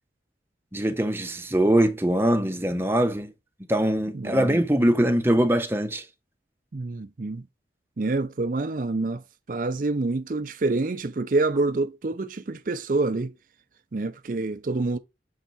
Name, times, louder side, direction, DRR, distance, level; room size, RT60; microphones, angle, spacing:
voice 1, 0.7-3.3 3.7-6.1, right 1 dB, 10° right, 0.8 m, -22 dB
voice 2, 4.1-4.6 6.7-7.4 8.0-9.2 9.5-13.3 13.9-15.0, right 3 dB, 45° right, 0.5 m, -27 dB
7.2 x 4.5 x 4.0 m
head